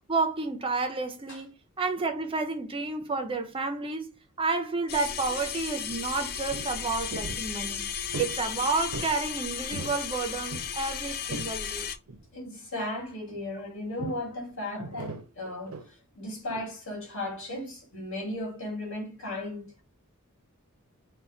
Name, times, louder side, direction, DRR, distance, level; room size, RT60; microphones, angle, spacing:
voice 1, 0.0-7.9 8.2-11.9, right 3 dB, 25° right, 0.5 m, -30 dB
sound 1, 4.9-12.0, left 8 dB, 45° left, 0.4 m, -35 dB
sound 2, 5.9-6.0 6.2-6.7 7.1-7.5 8.1-8.4 8.9-9.2 9.5-10.0 10.3-11.5 12.1-12.3 14.0-14.3 14.8-15.9 16.5-16.7, right 3 dB, 75° right, 0.6 m, -39 dB
voice 2, 12.3-19.8, left 1 dB, 65° left, 1.8 m, -36 dB
4.0 x 2.2 x 3.8 m
head